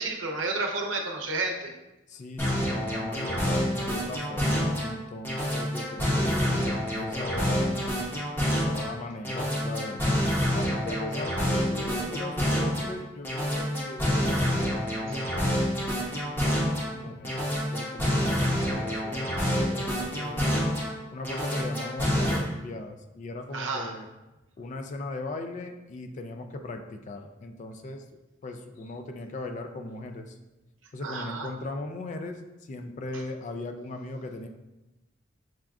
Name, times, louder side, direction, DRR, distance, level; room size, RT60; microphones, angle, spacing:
voice 1, 0.0-1.7 15.1-15.2 17.1-17.2 23.5-23.9 31.0-31.5, right 3 dB, 85° right, 1 dB, 0.6 m, -31 dB
voice 2, 2.1-8.1 8.5-10.2 10.5-15.6 16.1-16.6 16.9-17.4 17.7-20.6 21.1-24.1 24.6-28.0 28.4-30.4 30.9-34.5, left 2 dB, 40° left, 6 dB, 0.3 m, -38 dB
sound 1, 2.4-4.9 5.2-8.9 9.2-12.9 13.2-16.9 17.2-20.9 21.2-22.4, equal, 10° left, 0.8 m, -27 dB
6.1 x 2.3 x 2.4 m, 1.0 s
head